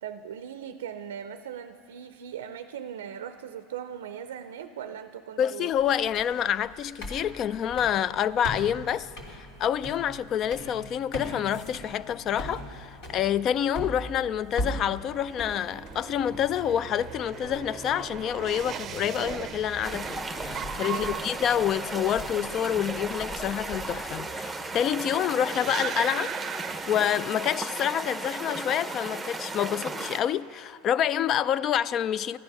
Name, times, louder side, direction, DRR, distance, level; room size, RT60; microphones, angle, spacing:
voice 1, 0.0-5.7 20.9-21.3, right 8 dB, 90° right, 0.4 m, -39 dB
voice 2, 5.4-26.3 26.9-32.4, left 9 dB, 45° left, 0.3 m, -27 dB
sound 1, 5.7-24.1, equal, 65° left, 3.1 m, -41 dB
sound 2, 14.5-27.6 27.9-28.5, right 8 dB, 35° right, 0.5 m, -40 dB
sound 3, 19.8-30.2, right 3 dB, 10° right, 0.8 m, -35 dB
14.0 x 9.8 x 5.9 m
hypercardioid pair, 100°, 0 cm